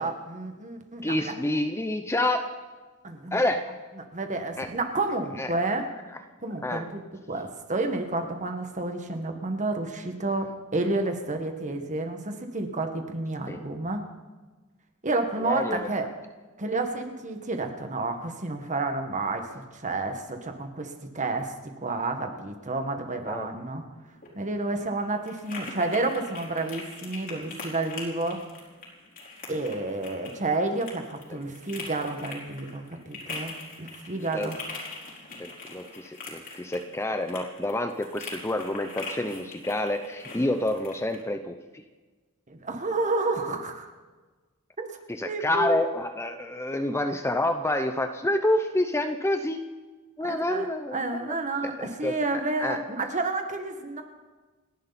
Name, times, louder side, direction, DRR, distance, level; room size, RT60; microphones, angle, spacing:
voice 1, 0.0-1.4 3.0-3.4 4.1-5.8 6.4-7.0 7.3-14.0 15.0-16.1 16.6-21.5 21.8-23.8 24.4-28.4 29.5-34.6 42.5-43.9 44.8-45.0 45.2-45.8 50.2-54.0, right 2 dB, 35° right, 5 dB, 1.8 m, -30 dB
voice 2, 1.0-2.4 3.3-3.6 4.6-4.7 5.4-5.5 6.6-6.8 13.5-13.6 15.4-15.9 23.2-23.5 34.3-34.5 35.4-41.8 45.2-49.6 50.2-51.1 51.8-52.8, left 1 dB, 10° left, 7 dB, 0.7 m, -28 dB
sound 1, 24.0-41.2, left 3 dB, 40° left, 4.1 m, -42 dB
29.0 x 11.0 x 4.3 m, 1.3 s
head